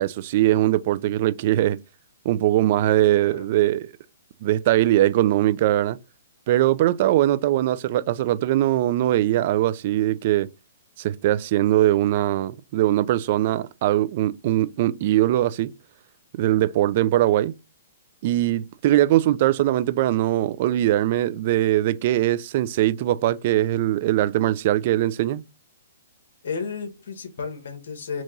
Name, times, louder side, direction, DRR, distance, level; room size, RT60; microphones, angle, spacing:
voice 1, 0.0-1.8 2.2-3.9 4.4-6.0 6.5-10.5 11.0-15.7 16.3-17.5 18.2-25.4, right 14 dB, 45° right, 0.4 m, -21 dB
voice 2, 26.4-28.2, left 5 dB, 65° left, 1.6 m, -33 dB
4.4 x 2.9 x 3.9 m
hypercardioid pair, 140°, 0 cm